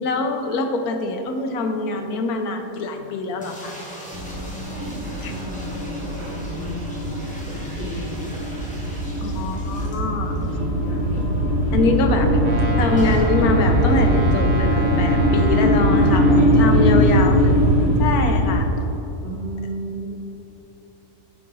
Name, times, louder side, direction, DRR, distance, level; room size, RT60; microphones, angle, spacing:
voice 1, 0.0-3.8 5.2-5.3 9.2-10.4 10.8-11.2 11.7-12.3 12.8-17.5 18.0-18.6, left 3 dB, 70° left, 5 dB, 1.1 m, -24 dB
sound 1, 3.4-10.5 10.9-11.0 11.2-11.3 13.0-13.3, equal, 5° left, 1.1 m, -39 dB
sound 2, 4.1-18.6, equal, 40° left, 1.4 m, -20 dB
voice 2, 4.5-9.3 9.9-10.6 10.9-11.1 11.7-12.4 16.5-16.9 18.1-18.4 19.2-20.2, equal, 70° right, -5 dB, 2.2 m, -35 dB
Brass instrument, 12.4-16.5, right 2 dB, 55° right, 1.0 m, -31 dB
9.5 x 4.0 x 3.8 m, 3.0 s
omnidirectional pair, 1.7 m